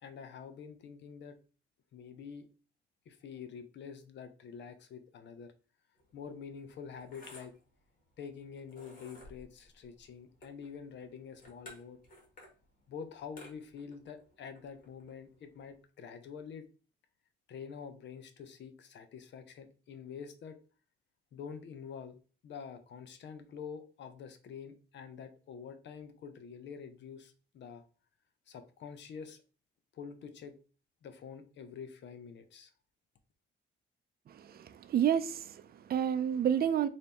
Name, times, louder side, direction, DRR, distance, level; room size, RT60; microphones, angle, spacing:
voice 1, 0.0-1.4 1.9-2.5 3.1-5.5 6.1-7.5 8.2-12.0 12.9-16.7 17.5-20.6 21.3-22.2 22.4-27.8 28.5-29.4 29.9-30.6 31.0-32.7, left 6 dB, 65° left, 0.7 m, -47 dB
sound 1, 6.0-15.8, left 1 dB, 45° left, 1.8 m, -57 dB
voice 2, 34.3-36.9, right 9 dB, 50° right, 0.5 m, -30 dB
4.0 x 2.7 x 3.5 m
cardioid pair, 90°, 20 cm